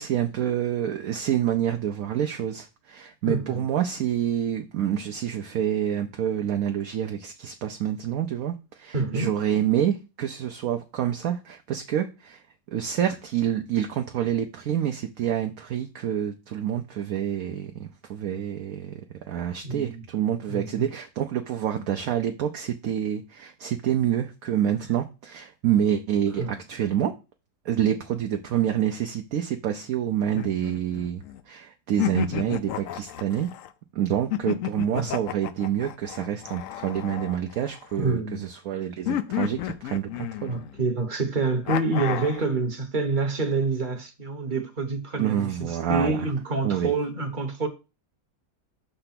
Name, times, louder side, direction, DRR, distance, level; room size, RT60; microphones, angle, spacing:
voice 1, 0.0-12.4 12.7-19.0 19.3-27.1 27.6-33.5 33.9-40.6 45.2-46.3 46.6-46.9, right 10 dB, 65° right, 1.0 m, -27 dB
voice 2, 3.2-3.7 8.9-9.3 19.6-20.0 20.5-20.9 26.4-26.5 34.9-35.1 38.0-38.5 40.5-47.7, right 3 dB, 35° right, 1.0 m, -27 dB
sound 1, 30.3-31.4 32.0-33.7 34.3-38.1 39.1-40.8 41.7-42.5, left 12 dB, 70° left, 0.8 m, -32 dB
6.9 x 3.3 x 5.8 m
omnidirectional pair, 1.7 m